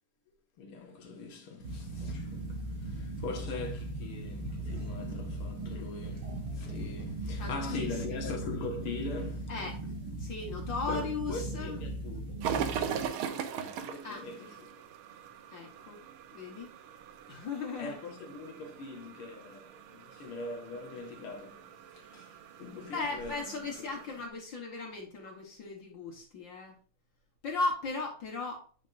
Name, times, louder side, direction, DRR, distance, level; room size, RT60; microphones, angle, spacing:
voice 1, 0.6-9.5 10.9-14.7 17.8-21.6 21.9-23.9, left 3 dB, 90° left, 2.4 m, -42 dB
sound 1, 1.6-13.1, right 1 dB, 55° right, 2.3 m, -38 dB
voice 2, 7.4-7.9 9.5-9.9 10.2-11.8 14.0-14.2 15.5-16.0 16.3-16.7 17.3-18.0 22.9-26.8 27.4-28.7, left 3 dB, 60° left, 2.0 m, -37 dB
sound 2, 12.4-24.3, right 8 dB, 85° right, 1.6 m, -41 dB
9.6 x 5.3 x 2.5 m
omnidirectional pair, 2.3 m